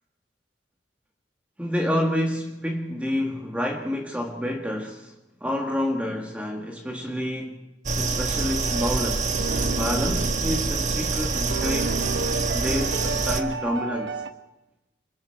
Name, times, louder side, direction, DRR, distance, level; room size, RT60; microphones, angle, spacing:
voice 1, 1.6-5.1 5.4-7.7 7.9-12.0 12.5-14.2, left 1 dB, 5° right, 1.6 m, -29 dB
sound 1, 7.9-13.4, right 3 dB, 40° right, 1.3 m, -26 dB
sound 2, 8.6-14.3, right 3 dB, 70° right, 1.2 m, -32 dB
27.5 x 26.5 x 4.6 m
head